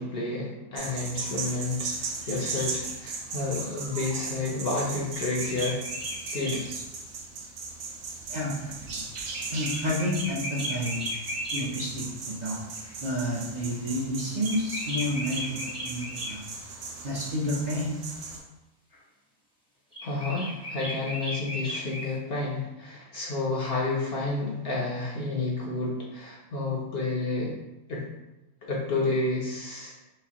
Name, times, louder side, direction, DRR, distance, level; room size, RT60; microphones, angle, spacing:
voice 1, 0.0-5.8 6.3-6.7 20.0-27.6 27.9-28.0 28.6-29.9, left 3 dB, 55° left, -3 dB, 0.8 m, -30 dB
sound 1, 0.8-18.4, right 4 dB, 80° right, 1.1 m, -37 dB
sound 2, 5.1-6.6 9.7-11.6 14.4-16.4 19.9-22.1, equal, 5° left, 0.6 m, -35 dB
voice 2, 8.3-9.0 9.5-12.7 13.0-16.4 17.0-18.0, equal, 45° right, -7 dB, 0.6 m, -30 dB
4.9 x 2.1 x 2.8 m, 0.97 s
omnidirectional pair, 1.4 m